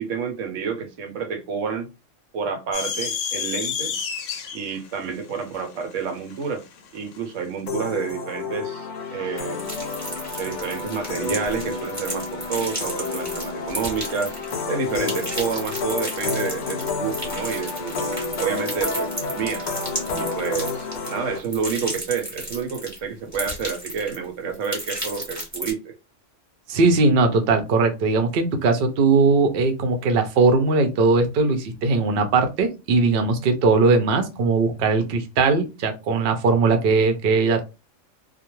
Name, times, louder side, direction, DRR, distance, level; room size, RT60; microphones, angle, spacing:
voice 1, 0.0-1.9 2.3-4.0 4.5-6.6 6.9-9.6 10.4-14.3 14.7-17.9 18.4-19.6 20.1-25.9, right 6 dB, 85° right, 1.0 m, -29 dB
sound 1, 2.7-7.2, left 7 dB, 80° left, 0.9 m, -30 dB
sound 2, 7.7-21.4, left 4 dB, 65° left, 0.4 m, -30 dB
sound 3, 9.6-14.6 14.9-23.0 23.3-24.2 24.5-25.7, equal, 15° right, 0.9 m, -33 dB
voice 2, 26.7-37.6, right 3 dB, 60° right, 0.7 m, -19 dB
2.3 x 2.1 x 2.9 m
omnidirectional pair, 1.3 m